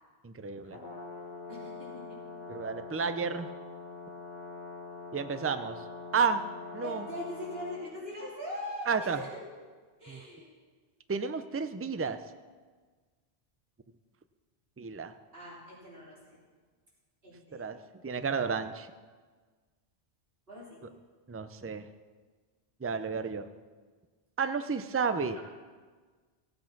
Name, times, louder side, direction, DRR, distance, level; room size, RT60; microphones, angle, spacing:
voice 1, 0.2-0.8 2.5-3.5 5.1-5.8 6.1-6.4 6.7-7.1 8.9-9.2 10.1-10.2 11.1-12.2 14.8-15.1 17.5-17.8 18.0-18.9 21.3-21.9 22.8-23.5 24.4-25.4, right 5 dB, 25° right, 10 dB, 0.3 m, -31 dB
Brass instrument, 0.6-7.8, left 3 dB, 65° left, 1.9 m, -44 dB
voice 2, 1.5-2.2 6.8-9.4 10.0-10.5 15.3-16.4 17.2-17.6 20.5-20.8 25.3-25.4, left 1 dB, 60° right, -6 dB, 4.0 m, -41 dB
16.0 x 7.9 x 5.9 m, 1.4 s
omnidirectional pair, 1.1 m